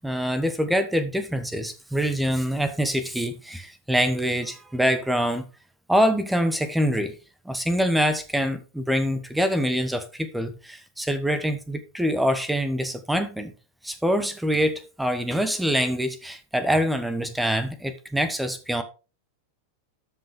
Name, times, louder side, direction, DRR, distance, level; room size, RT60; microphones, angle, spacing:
voice 1, 0.0-5.4 5.9-7.2 7.4-13.5 13.8-18.8, equal, 5° right, 1.1 m, -25 dB
12.5 x 5.5 x 3.5 m
figure-of-eight pair, 90°, 0 cm